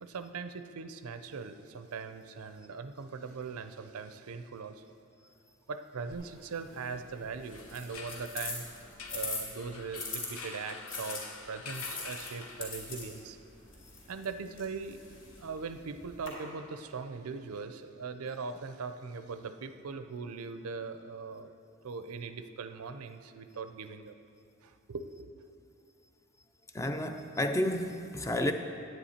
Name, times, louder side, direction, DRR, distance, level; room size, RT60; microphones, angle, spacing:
voice 1, 0.0-4.9 5.7-8.7 9.1-13.4 14.1-15.0 15.4-21.5 21.8-24.2 24.6-25.3, right 5 dB, 90° right, 10 dB, 0.5 m, -40 dB
sound 1, 6.1-10.3 10.9-16.3, left 3 dB, 60° left, 2.6 m, -43 dB
sound 2, 7.4-13.1, left 4 dB, 80° left, 1.0 m, -46 dB
voice 2, 26.7-28.5, left 1 dB, 15° left, 7 dB, 0.3 m, -31 dB
10.0 x 9.2 x 4.3 m, 2.5 s
head